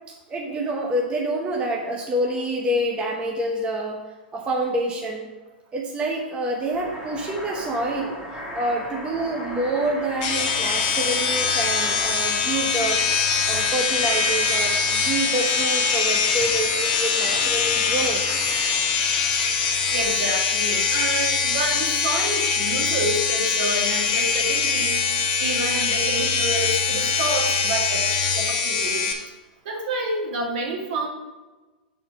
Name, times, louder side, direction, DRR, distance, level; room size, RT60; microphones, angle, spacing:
voice 1, 0.3-4.0 4.3-5.3 5.7-13.1 13.5-18.2, right 1 dB, 20° right, 0 dB, 0.9 m, -27 dB
sound 1, 6.6-20.2, left 1 dB, ahead, 2.0 m, -37 dB
sound 2, 10.2-29.1, left 5 dB, 45° left, 1.4 m, -23 dB
voice 2, 19.9-25.0 25.4-28.1 28.3-29.1 29.7-31.1, right 2 dB, 60° right, 0 dB, 1.9 m, -28 dB
6.7 x 4.3 x 6.3 m, 1.2 s
hypercardioid pair, 130°, 5 cm